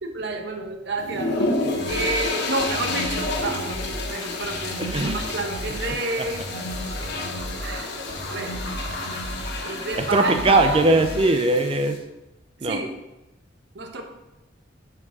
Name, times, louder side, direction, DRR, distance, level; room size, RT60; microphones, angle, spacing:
voice 1, 0.0-6.4 7.6-7.9 8.3-8.6 9.6-10.9 12.6-12.9 13.7-14.0, right 3 dB, 65° right, 4 dB, 0.9 m, -29 dB
sound 1, 1.0-12.0, left 3 dB, 60° left, 1.1 m, -31 dB
sound 2, 1.7-6.2, left 4 dB, 80° left, 1.3 m, -40 dB
sound 3, 1.7-11.2, equal, 45° right, 2.6 m, -34 dB
voice 2, 4.8-5.2 7.0-7.1 10.0-12.0 12.6-12.8, right 2 dB, 30° right, 7 dB, 0.5 m, -20 dB
6.1 x 4.7 x 6.0 m, 0.98 s
head